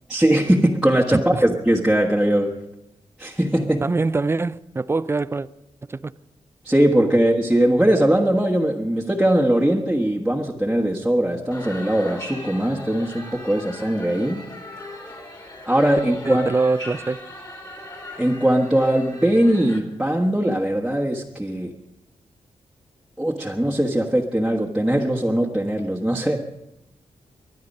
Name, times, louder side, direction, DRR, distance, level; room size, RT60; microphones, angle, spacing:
voice 1, 0.1-2.5 3.2-3.8 6.6-14.4 15.6-16.5 18.2-21.8 23.2-26.4, right 1 dB, 5° right, 1.3 m, -20 dB
voice 2, 1.1-1.4 3.8-5.5 5.9-6.1 16.3-17.2, right 3 dB, 20° right, 0.5 m, -23 dB
sound 1, 11.5-19.8, left 1 dB, 35° left, 3.3 m, -39 dB
23.5 x 10.0 x 5.4 m
cardioid pair, 95°, 12 cm